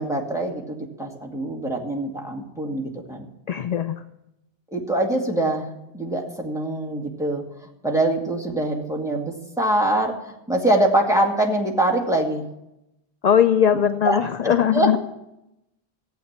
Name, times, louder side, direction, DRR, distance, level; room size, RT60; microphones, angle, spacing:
voice 1, 0.0-3.3 4.7-5.7 5.9-7.4 7.8-12.5 14.0-14.2 14.4-15.0, right 1 dB, 5° right, 0 dB, 2.1 m, -24 dB
voice 2, 3.5-4.0 13.2-15.0, left 8 dB, 50° left, 9 dB, 0.6 m, -19 dB
15.0 x 8.5 x 7.3 m, 0.86 s
omnidirectional pair, 1.1 m